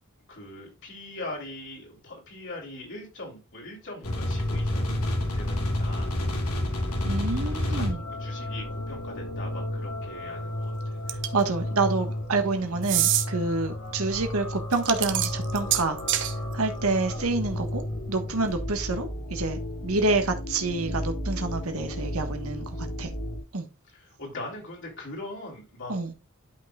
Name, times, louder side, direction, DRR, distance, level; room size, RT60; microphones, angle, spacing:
voice 1, 0.3-6.1 6.8-7.0 7.4-7.9 8.2-11.0 22.7-22.8 23.9-26.2, left 2 dB, 55° left, 3.5 m, -41 dB
sound 1, 4.0-23.4, left 1 dB, 80° left, 2.7 m, -31 dB
voice 2, 7.0-8.0 11.3-16.0 16.5-17.8 18.1-22.6 23.0-23.1 23.5-23.6 25.9-26.1, right 3 dB, 70° right, 1.5 m, -27 dB
sound 2, 11.1-11.5 12.8-13.3 14.7-16.3, right 12 dB, 55° right, 1.0 m, -25 dB
12.0 x 5.6 x 2.4 m
head